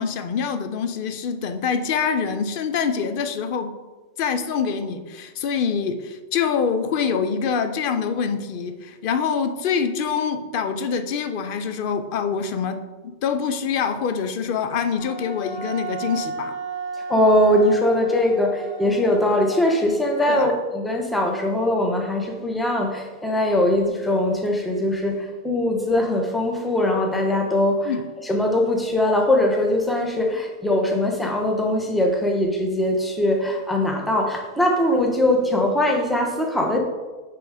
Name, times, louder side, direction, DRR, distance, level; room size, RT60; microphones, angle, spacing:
voice 1, 0.0-3.7 4.2-16.6 20.3-20.5 27.8-28.0, left 6 dB, 60° left, 9 dB, 0.5 m, -25 dB
Wind instrument woodwind instrument, 15.0-20.5, right 2 dB, 80° left, 2.6 m, -34 dB
voice 2, 17.1-27.9 28.2-36.8, left 1 dB, ahead, 1 dB, 0.7 m, -21 dB
5.8 x 5.3 x 4.9 m, 1.3 s
omnidirectional pair, 1.4 m